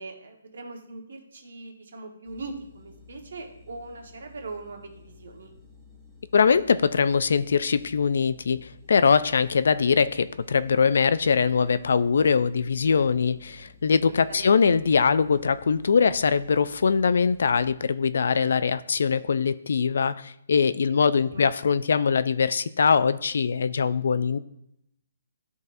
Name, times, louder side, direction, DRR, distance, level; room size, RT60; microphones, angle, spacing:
voice 1, 0.0-5.5 14.3-14.6 20.9-21.5, right 3 dB, 65° right, 4 dB, 1.3 m, -41 dB
sound 1, 2.3-17.7, left 5 dB, ahead, 0.7 m, -53 dB
voice 2, 6.3-24.4, left 5 dB, 60° left, 15 dB, 0.3 m, -22 dB
12.0 x 4.0 x 2.5 m, 0.78 s
hypercardioid pair, 170°, 0 cm